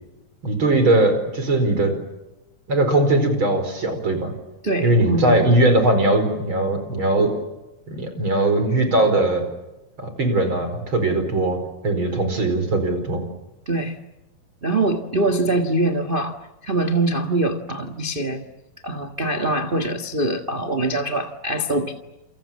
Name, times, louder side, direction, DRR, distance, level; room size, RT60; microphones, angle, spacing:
voice 1, 0.4-2.0 2.7-4.3 4.8-7.3 7.9-9.4 10.0-13.2, right 2 dB, 35° right, 8 dB, 5.4 m, -20 dB
voice 2, 4.6-5.5 12.1-12.2 13.7-14.0 14.6-18.4 18.8-21.9, right 2 dB, 70° right, 5 dB, 0.5 m, -23 dB
28.5 x 26.5 x 7.5 m, 0.97 s
omnidirectional pair, 4.1 m